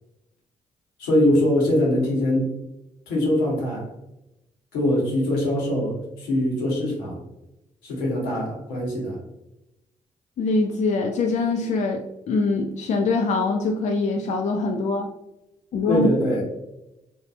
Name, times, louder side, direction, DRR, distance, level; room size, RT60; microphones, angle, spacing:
voice 1, 1.0-2.5 3.1-3.9 4.7-7.2 7.8-9.2 15.9-16.4, left 1 dB, 85° left, -4 dB, 0.9 m, -22 dB
voice 2, 10.4-15.1 15.7-16.1, left 3 dB, 50° left, 2 dB, 0.4 m, -23 dB
2.7 x 2.2 x 2.3 m, 0.90 s
hypercardioid pair, 50°, 15 cm